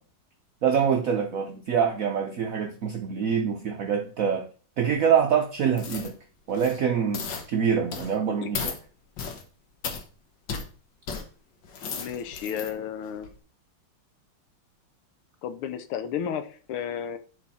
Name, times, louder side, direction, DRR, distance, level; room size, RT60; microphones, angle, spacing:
voice 1, 0.6-4.5 4.8-6.1 6.5-8.7, right 7 dB, 70° right, 4 dB, 0.8 m, -25 dB
sound 1, 5.8-6.1 6.5-6.8 7.1-7.5 7.9-8.2 8.5-8.8 9.2-9.4 9.8-10.0 10.5-10.7 11.1-11.2 11.6-12.7 13.2-13.3, left 5 dB, 60° left, 1.7 m, -34 dB
voice 2, 12.0-13.3 15.4-17.2, left 8 dB, 80° left, 11 dB, 1.7 m, -33 dB
11.0 x 4.0 x 4.2 m, 0.40 s
omnidirectional pair, 2.4 m